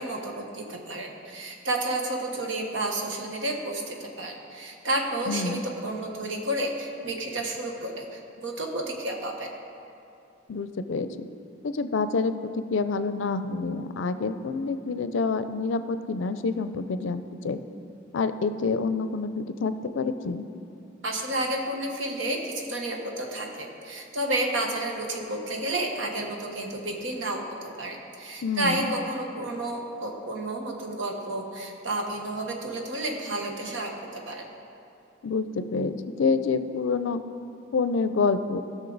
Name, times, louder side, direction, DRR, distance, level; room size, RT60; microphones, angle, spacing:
voice 1, 0.0-9.5 21.0-34.5, right 1 dB, 70° right, 2 dB, 1.3 m, -31 dB
voice 2, 5.3-5.6 10.5-11.1 11.6-12.3 12.7-17.6 18.1-20.5 28.4-28.9 35.2-35.9 36.2-37.2 37.7-38.6, left 4 dB, 70° left, 11 dB, 0.5 m, -27 dB
16.0 x 6.3 x 4.0 m, 2.6 s
head